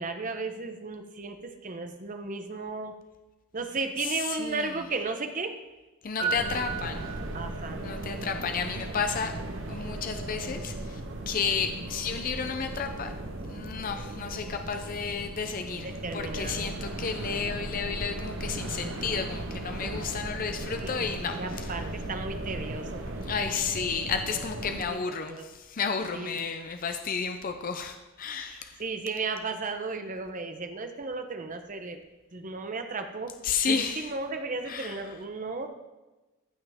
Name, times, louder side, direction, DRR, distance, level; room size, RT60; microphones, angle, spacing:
voice 1, 0.0-3.0 3.5-5.6 6.2-6.4 7.3-7.8 15.8-16.7 20.7-20.9 21.3-23.0 24.8-25.0 25.3-25.4 26.1-26.5 28.5-32.0 32.3-33.4 33.7-35.7, right 3 dB, 35° right, 6 dB, 0.8 m, -34 dB
voice 2, 4.0-4.8 6.0-7.1 7.8-9.3 9.7-13.1 13.4-21.8 23.2-28.8 33.4-34.1 34.7-35.0, left 6 dB, 40° left, 7 dB, 0.5 m, -32 dB
sound 1, 6.2-7.6, right 6 dB, 80° right, 3.0 m, -34 dB
sound 2, 6.3-24.8, right 1 dB, 60° right, 1.0 m, -37 dB
15.0 x 5.7 x 3.5 m, 1.1 s
head